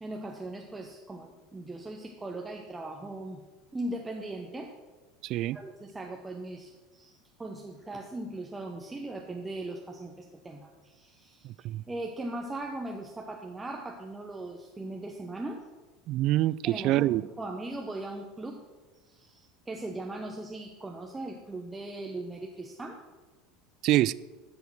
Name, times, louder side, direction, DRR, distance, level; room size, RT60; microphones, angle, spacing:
voice 1, 0.0-3.4 3.7-4.7 5.5-15.6 16.6-18.6 19.1-23.0, right 2 dB, 15° right, 1 dB, 1.1 m, -39 dB
voice 2, 5.2-5.6 11.4-11.8 16.1-17.2 23.8-24.1, right 15 dB, 45° right, 20 dB, 0.3 m, -25 dB
12.0 x 6.9 x 6.3 m, 1.2 s
figure-of-eight pair, 75°, 0 cm